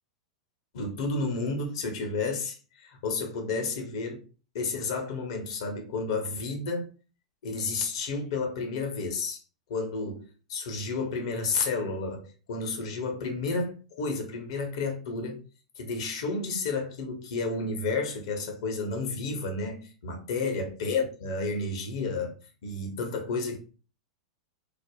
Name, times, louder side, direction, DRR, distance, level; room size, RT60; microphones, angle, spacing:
voice 1, 0.7-4.2 4.5-6.9 7.4-9.4 9.7-10.2 10.5-15.4 15.8-22.3 22.6-23.6, left 3 dB, 55° left, 0.7 m, -31 dB
3.3 x 2.0 x 2.3 m
figure-of-eight pair, 95°, 3 cm